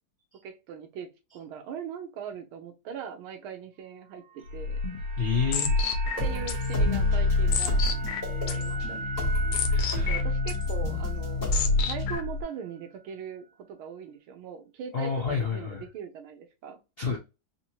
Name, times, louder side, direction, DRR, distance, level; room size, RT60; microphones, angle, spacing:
voice 1, 0.4-4.8 6.2-7.8 8.5-9.1 10.1-16.8, right 7 dB, 90° right, 1.7 m, -40 dB
sound 1, 4.2-12.5 12.8-12.9, right 4 dB, 45° right, 1.8 m, -42 dB
sound 2, 4.5-12.4, left 3 dB, 85° left, 1.5 m, -29 dB
voice 2, 5.2-5.7 9.7-10.2 14.9-15.8 17.0-17.2, left 5 dB, 70° left, 0.5 m, -29 dB
sound 3, 6.2-12.2, left 2 dB, 20° left, 1.5 m, -30 dB
4.1 x 2.7 x 2.9 m
omnidirectional pair, 2.2 m